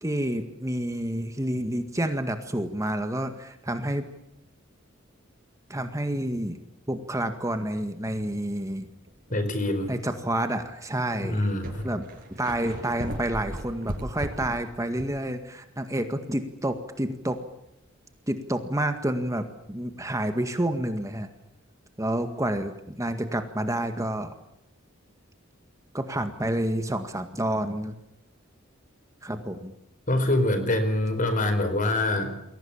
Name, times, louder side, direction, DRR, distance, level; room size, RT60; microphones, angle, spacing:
voice 1, 0.0-4.1 5.7-6.6 6.9-8.9 9.9-11.4 11.8-12.0 12.3-17.4 18.3-21.3 22.0-24.3 25.9-27.9 29.2-29.7, right 1 dB, 15° right, 7 dB, 1.9 m, -29 dB
sound 1, 9.1-9.3 10.0-10.1 11.0-11.1 11.3-15.3 15.6-15.7 19.3-19.4, equal, 45° right, 6.7 m, -37 dB
voice 2, 9.3-9.9 11.2-11.9 30.1-32.4, left 1 dB, 40° left, 9 dB, 4.7 m, -25 dB
29.5 x 22.5 x 7.3 m, 0.82 s
head